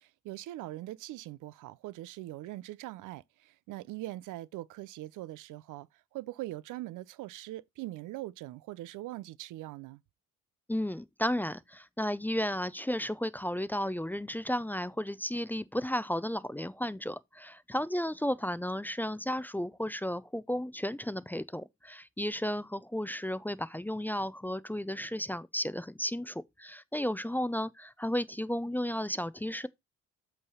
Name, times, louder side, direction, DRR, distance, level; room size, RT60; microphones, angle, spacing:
voice 1, 0.0-5.9 6.1-10.0, right 16 dB, 85° right, 0.5 m, -42 dB
voice 2, 10.7-29.7, left 1 dB, 5° left, 0.4 m, -33 dB
8.0 x 3.3 x 5.5 m
cardioid pair, 90°, 30 cm